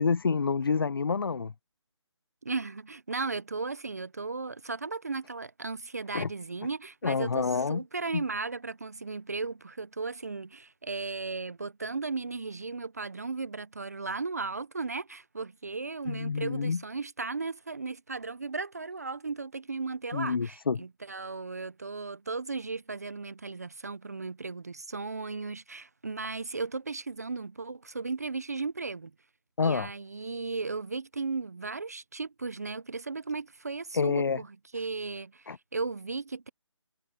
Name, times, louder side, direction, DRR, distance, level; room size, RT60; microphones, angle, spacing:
voice 1, 0.0-1.5 6.1-6.3 7.0-7.8 8.1-8.2 16.1-16.8 20.1-20.8 29.6-29.9 33.9-34.4 35.5-35.6, left 5 dB, 50° left, 0.4 m, -28 dB
voice 2, 2.4-29.1 29.6-34.5 34.7-36.5, right 4 dB, 30° right, 0.5 m, -36 dB
hypercardioid pair, 175°, 16 cm